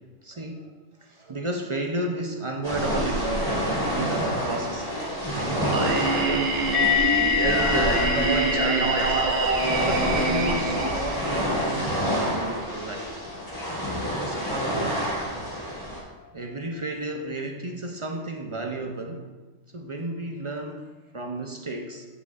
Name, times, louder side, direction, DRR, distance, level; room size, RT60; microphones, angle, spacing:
voice 1, 0.2-0.7 1.0-4.9 5.3-6.6 7.3-9.3 9.8-13.1 14.1-15.1 16.3-19.3 19.7-22.1, right 2 dB, 45° right, 3 dB, 0.4 m, -32 dB
sound 1, 2.6-16.0, equal, 30° left, 2.6 m, -28 dB
Singing, 5.7-11.7, right 3 dB, 80° right, 1.2 m, -25 dB
sound 2, 6.7-13.6, left 14 dB, 70° left, 0.8 m, -29 dB
8.4 x 7.2 x 2.4 m, 1.2 s
omnidirectional pair, 1.2 m